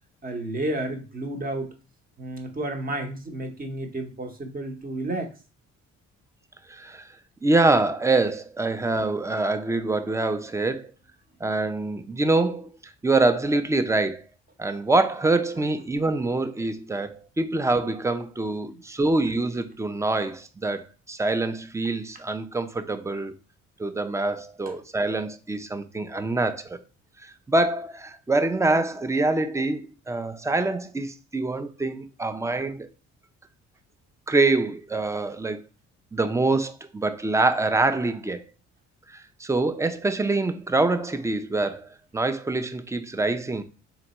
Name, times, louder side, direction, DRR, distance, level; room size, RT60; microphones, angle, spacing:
voice 1, 0.2-1.7 2.2-5.3 8.7-8.8, right 1 dB, 30° right, 0.9 m, -31 dB
voice 2, 6.7-7.1 7.4-10.8 11.4-14.2 14.6-23.3 23.8-26.8 27.2-32.9 34.3-35.6 36.1-38.4 39.1-43.6, right 2 dB, 10° right, 0.4 m, -25 dB
3.3 x 3.0 x 4.1 m
cardioid pair, 90°, 30 cm